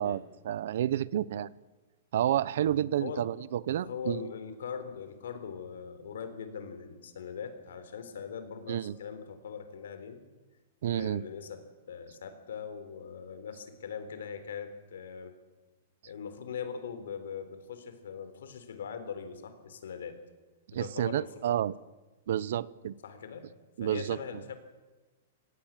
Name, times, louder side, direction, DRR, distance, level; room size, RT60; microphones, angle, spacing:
voice 1, 0.0-1.5 2.1-4.2 8.7-8.9 10.8-11.2 20.7-21.7 22.3-22.9 23.8-24.2, right 11 dB, 55° right, 21 dB, 0.7 m, -30 dB
voice 2, 2.6-3.3 3.8-10.2 10.9-15.4 16.1-20.2 20.7-21.6 23.0-23.5 23.8-24.5, left 6 dB, 85° left, 10 dB, 3.7 m, -41 dB
25.0 x 18.0 x 7.5 m, 1.2 s
supercardioid pair, 175°, 0 cm